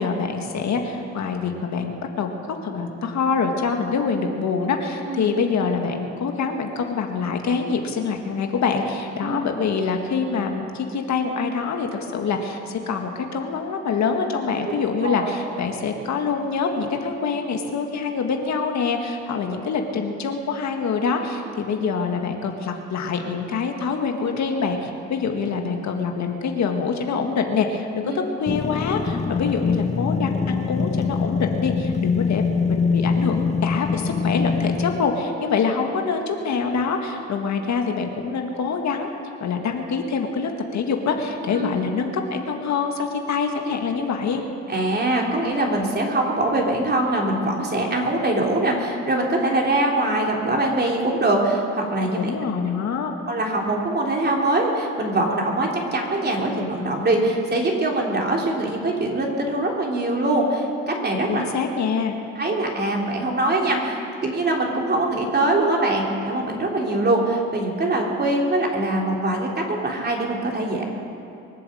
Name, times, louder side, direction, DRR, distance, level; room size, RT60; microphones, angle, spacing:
voice 1, 0.0-39.1 39.4-44.4 52.1-53.2 61.3-62.1, left 5 dB, 65° left, 4 dB, 1.8 m, -25 dB
sound 1, 28.5-35.2, left 5 dB, 25° left, 0.6 m, -24 dB
voice 2, 44.7-52.3 53.3-61.4 62.4-70.8, right 2 dB, 35° right, -1 dB, 3.3 m, -23 dB
23.0 x 7.9 x 7.8 m, 2.8 s
cardioid pair, 90°, 30 cm